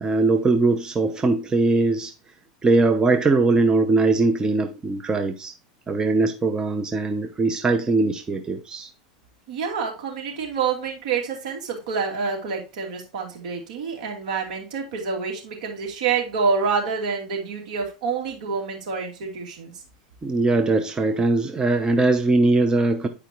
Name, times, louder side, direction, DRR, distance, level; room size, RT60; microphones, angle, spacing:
voice 1, 0.0-2.1 2.6-5.5 5.9-8.9 20.2-23.1, right 3 dB, 20° right, 0.8 m, -21 dB
voice 2, 9.5-19.7, right 5 dB, 75° right, 2.6 m, -27 dB
10.0 x 5.0 x 3.0 m
hypercardioid pair, 105°, 4 cm